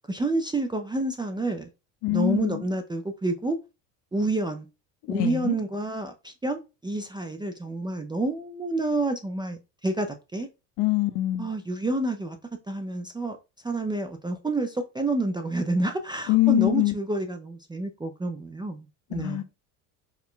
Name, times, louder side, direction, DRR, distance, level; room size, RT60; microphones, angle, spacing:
voice 1, 0.1-1.7 2.1-3.6 4.1-4.7 5.1-10.5 11.4-12.4 12.7-13.4 13.6-19.4, right 2 dB, 10° right, 0.4 m, -29 dB
voice 2, 2.0-2.6 5.1-5.6 10.8-11.5 16.3-16.9 19.1-19.4, left 17 dB, 60° left, 0.8 m, -24 dB
4.6 x 2.2 x 3.7 m
supercardioid pair, 85°, 46 cm